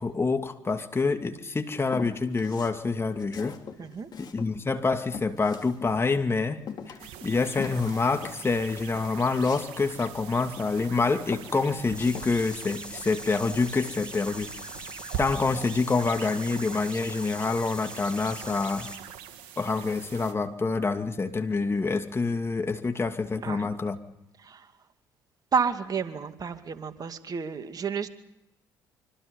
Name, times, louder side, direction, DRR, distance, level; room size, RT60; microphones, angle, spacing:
voice 1, 0.0-3.6 4.2-14.5 15.2-18.9 19.6-24.0, left 4 dB, 30° left, 2.6 m, -27 dB
Walk footsteps, 1.9-2.8 3.2-6.3 6.7-10.9 11.3-12.6, left 6 dB, 50° left, 3.4 m, -42 dB
voice 2, 3.8-4.1 23.4-23.7 24.4-24.7 25.5-28.1, right 6 dB, 45° right, 2.3 m, -30 dB
sound 1, 7.0-20.3, right 9 dB, 70° right, 2.5 m, -42 dB
sound 2, 11.9-19.0, left 1 dB, 10° left, 5.8 m, -43 dB
26.0 x 25.5 x 5.5 m
hypercardioid pair, 55°, 9 cm